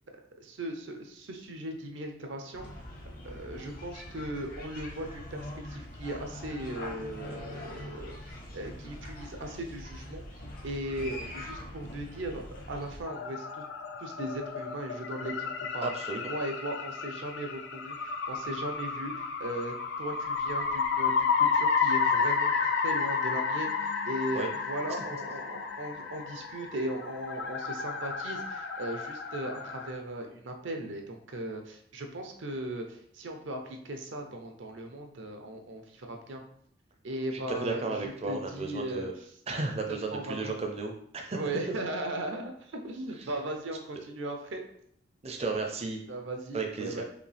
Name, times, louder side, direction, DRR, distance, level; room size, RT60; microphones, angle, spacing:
voice 1, 0.4-2.8 3.2-10.2 10.6-13.6 14.0-15.9 16.3-36.4 37.0-39.1 40.1-40.5 41.3-44.6 46.1-47.0, right 1 dB, 75° right, 4 dB, 0.6 m, -38 dB
sound 1, 2.5-13.0, left 1 dB, 50° left, 0.9 m, -43 dB
sound 2, 13.0-29.9, left 5 dB, 65° left, 0.5 m, -31 dB
voice 2, 15.8-16.3 24.4-24.5 37.3-39.1 39.5-41.4 45.2-46.0 46.5-47.0, right 3 dB, 35° right, 2 dB, 0.5 m, -34 dB
4.9 x 2.7 x 3.3 m, 0.66 s
head